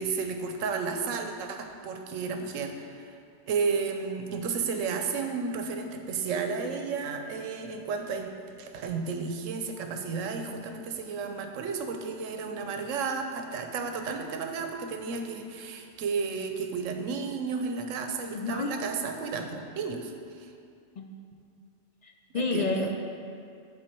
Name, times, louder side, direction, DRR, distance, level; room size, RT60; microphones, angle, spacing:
voice 1, 0.0-3.2 3.5-8.3 8.6-20.5 22.3-22.9, right 5 dB, 90° right, 5 dB, 1.0 m, -32 dB
voice 2, 18.3-18.7 21.0-21.1 22.0-23.0, left 3 dB, 70° left, 2 dB, 0.4 m, -29 dB
8.9 x 4.1 x 4.5 m, 2.4 s
omnidirectional pair, 1.3 m